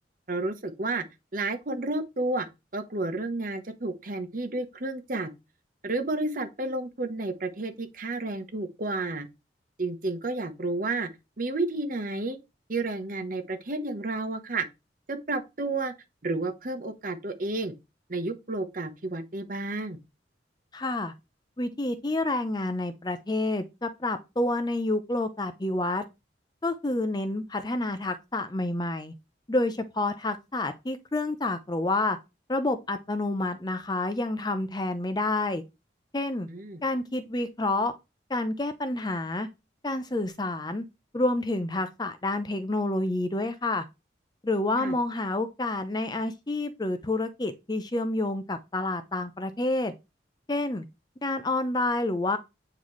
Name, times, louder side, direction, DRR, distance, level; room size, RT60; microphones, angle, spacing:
voice 1, 0.3-1.0 1.3-2.5 2.7-5.3 5.8-9.3 9.8-11.1 11.4-12.4 12.7-14.7 15.1-15.9 16.2-17.7 18.1-20.0 36.5-36.8 44.8-45.0, right 2 dB, 45° right, 1.0 m, -31 dB
voice 2, 20.7-21.1 21.6-26.0 26.6-29.1 29.5-32.2 32.5-35.6 36.1-36.5 36.8-37.9 38.3-39.5 39.8-40.8 41.1-43.8 44.4-49.9 50.5-50.8 51.2-52.4, left 2 dB, 25° left, 0.6 m, -28 dB
8.7 x 4.0 x 3.2 m
head